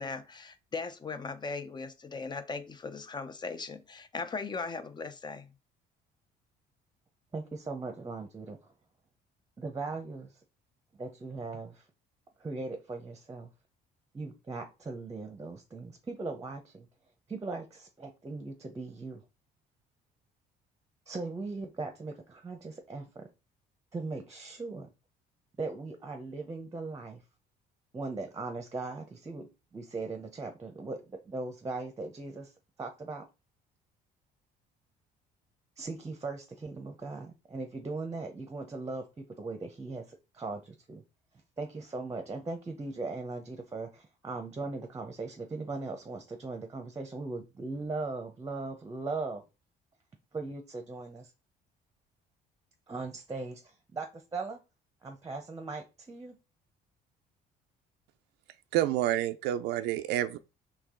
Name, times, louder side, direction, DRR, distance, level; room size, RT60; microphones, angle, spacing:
voice 1, 0.0-5.5, left 4 dB, 25° left, 0.6 m, -38 dB
voice 2, 7.3-8.6 9.6-10.3 11.0-11.8 12.4-13.5 14.1-16.9 17.3-19.2 21.1-23.3 23.9-24.9 25.6-27.2 27.9-29.5 29.7-32.5 32.8-33.2 35.8-41.0 41.6-49.4 50.3-51.3 52.9-53.6 53.9-54.6 55.0-56.4, right 3 dB, 20° right, 0.8 m, -39 dB
voice 3, 58.7-60.4, right 13 dB, 90° right, 0.4 m, -28 dB
4.6 x 3.1 x 3.7 m
cardioid pair, 110°, 17 cm